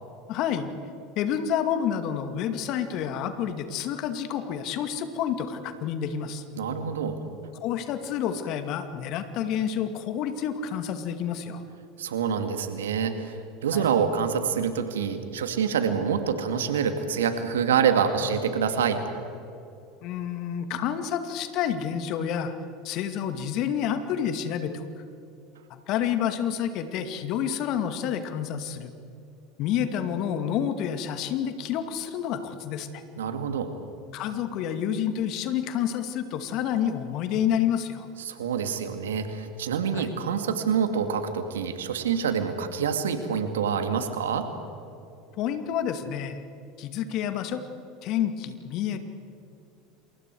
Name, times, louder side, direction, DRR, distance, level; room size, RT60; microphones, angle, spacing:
voice 1, 0.3-0.7 1.2-6.4 7.5-11.6 13.7-13.9 20.0-22.5 22.8-24.8 25.7-28.9 29.6-33.0 34.1-38.1 39.9-40.1 45.3-46.4 46.8-47.6 48.0-49.0, left 9 dB, 55° left, 8 dB, 2.3 m, -29 dB
voice 2, 6.6-7.2 12.0-19.0 33.2-33.7 38.3-44.5, right 7 dB, 75° right, 7 dB, 2.3 m, -26 dB
28.5 x 28.0 x 4.8 m, 2.7 s
hypercardioid pair, 75°, 0 cm